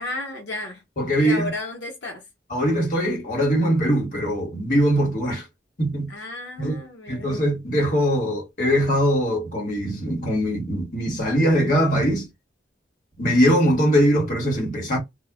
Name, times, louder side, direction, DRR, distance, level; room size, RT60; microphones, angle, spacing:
voice 1, 0.0-0.8 1.2-2.2 6.1-7.4, left 2 dB, 85° left, 0.8 m, -33 dB
voice 2, 1.0-1.5 2.5-5.4 5.8-6.1 6.6-6.8 7.1-12.3 13.2-15.0, equal, 50° left, 1.2 m, -21 dB
2.2 x 2.0 x 3.3 m
head